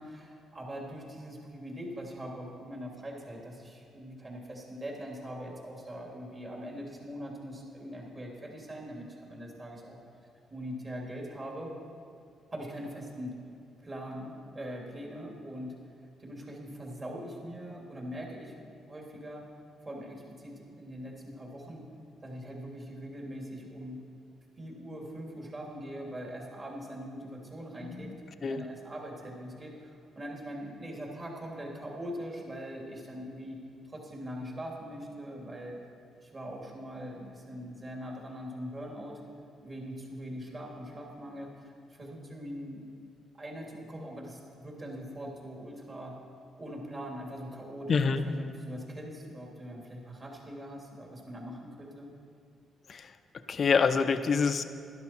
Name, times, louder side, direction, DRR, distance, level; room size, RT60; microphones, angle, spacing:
voice 1, 0.0-10.0 10.5-11.7 12.5-13.3 13.8-15.7 16.2-19.4 19.8-21.9 22.2-24.0 24.6-33.6 33.9-35.8 36.2-39.2 39.6-42.8 43.4-46.1 46.6-52.1, equal, 30° right, -2 dB, 2.9 m, -42 dB
voice 2, 27.8-28.2 28.4-28.6 47.9-48.2 52.9-54.6, left 5 dB, 45° left, 10 dB, 0.6 m, -27 dB
12.0 x 12.0 x 4.5 m, 2.4 s
cardioid pair, 90°, 0 cm